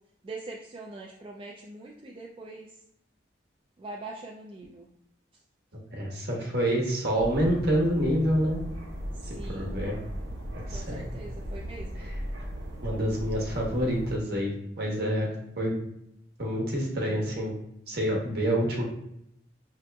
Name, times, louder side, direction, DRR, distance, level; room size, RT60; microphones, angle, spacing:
voice 1, 0.2-2.8 3.8-4.9 9.1-9.7 10.7-12.1, right 2 dB, 30° right, -2 dB, 0.3 m, -43 dB
voice 2, 5.9-8.6 9.2-10.0 10.5-11.0 11.9-12.1 12.8-15.3 15.6-15.8 16.4-17.5 17.9-18.8, equal, 60° right, -2 dB, 1.0 m, -27 dB
sound 1, 7.2-14.2, equal, 85° right, 0.8 m, -37 dB
4.9 x 2.8 x 2.2 m, 0.76 s
head